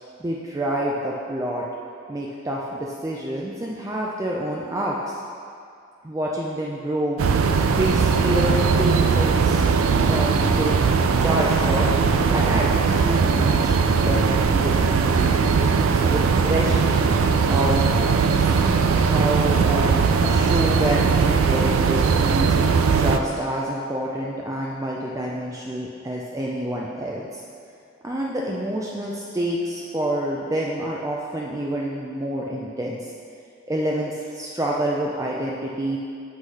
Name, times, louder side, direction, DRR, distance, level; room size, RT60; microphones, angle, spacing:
voice 1, 0.2-1.6 2.1-5.2 6.0-7.2 7.8-9.6 10.1-10.8 11.2-13.7 14.0-14.2 14.5-15.3 15.9-17.8 18.4-18.6 19.0-22.6 23.0-27.4 28.0-33.1 33.7-36.0, right 1 dB, 15° right, -3 dB, 0.4 m, -27 dB
sound 1, 7.2-23.2, right 5 dB, 90° right, 0.4 m, -19 dB
8.1 x 3.2 x 5.5 m, 2.3 s
head